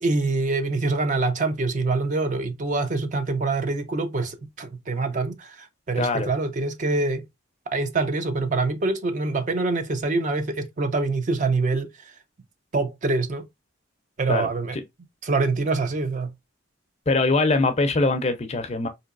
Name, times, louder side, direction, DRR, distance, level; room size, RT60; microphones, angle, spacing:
voice 1, 0.0-7.3 7.7-12.2 12.7-13.5 14.2-14.8 15.2-16.3, right 3 dB, 35° right, 0.4 m, -25 dB
voice 2, 6.0-6.3 14.3-14.5 17.1-18.9, left 3 dB, 30° left, 0.4 m, -22 dB
3.8 x 2.8 x 2.3 m
head